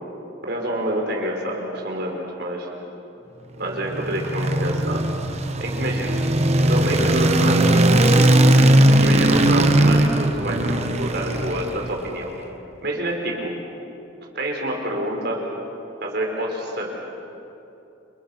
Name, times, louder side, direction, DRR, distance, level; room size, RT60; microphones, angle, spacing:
voice 1, 0.4-2.7 3.6-6.2 6.7-7.8 9.0-12.3 12.8-13.5 14.3-15.4 16.0-16.9, right 1 dB, 55° right, 0 dB, 5.1 m, -27 dB
sound 1, 3.7-12.1, right 1 dB, 35° right, 1.3 m, -18 dB
30.0 x 29.5 x 6.1 m, 2.8 s
head